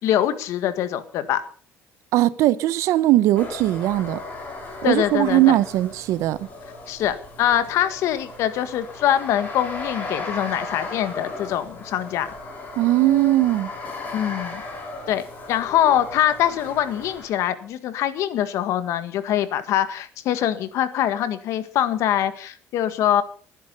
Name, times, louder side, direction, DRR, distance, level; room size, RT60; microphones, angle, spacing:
voice 1, 0.0-1.4 4.8-5.6 6.9-12.3 14.1-14.6 15.1-23.2, left 11 dB, 70° left, 1.7 m, -23 dB
voice 2, 2.1-4.2 4.8-6.5 12.8-13.7, right 15 dB, 75° right, 0.9 m, -19 dB
sound 1, 3.4-17.3, left 3 dB, 30° left, 5.4 m, -36 dB
20.5 x 10.5 x 5.5 m
cardioid pair, 145°, 5 cm